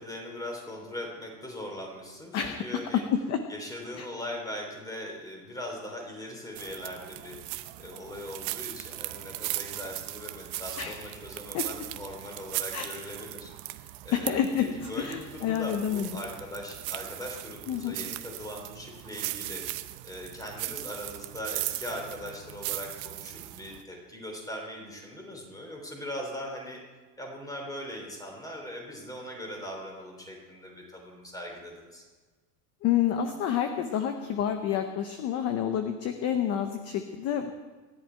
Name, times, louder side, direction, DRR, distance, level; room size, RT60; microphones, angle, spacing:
voice 1, 0.0-3.0 3.5-7.4 7.8-26.8 27.2-32.0, left 1 dB, 5° left, 1 dB, 3.3 m, -40 dB
voice 2, 2.3-2.6 2.9-3.4 3.9-4.1 10.8-11.0 11.5-11.6 12.7-12.9 14.1-14.7 15.0-16.2 17.7-18.0 32.8-37.5, left 9 dB, 30° left, 7 dB, 0.8 m, -28 dB
sound 1, 6.6-23.8, right 17 dB, 40° right, 0.7 m, -38 dB
25.5 x 11.0 x 4.5 m, 1.3 s
supercardioid pair, 155°, 49 cm